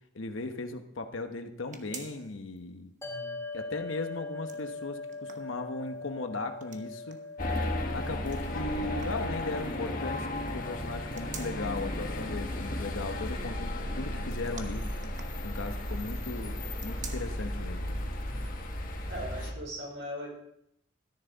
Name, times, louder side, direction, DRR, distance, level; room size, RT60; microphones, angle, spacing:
voice 1, 0.1-2.9 3.5-7.2 7.9-14.9 15.4-18.0, left 3 dB, 80° left, 7 dB, 1.0 m, -37 dB
sound 1, 1.7-2.6 3.0-3.1 4.2-6.0 6.6-7.3 8.3-9.3 10.8-11.9 14.4-15.9 16.7-17.5 18.0-18.1 19.0-19.1, right 6 dB, 40° right, 1.1 m, -48 dB
sound 2, 3.0-15.5, left 3 dB, 15° left, 1.8 m, -44 dB
voice 2, 3.0-3.4 15.9-16.0 18.2-18.5 19.1-20.3, equal, 70° right, -2 dB, 5.2 m, -41 dB
sound 3, 7.4-19.5, left 1 dB, 45° left, 1.6 m, -34 dB
13.5 x 10.0 x 3.9 m, 0.74 s
head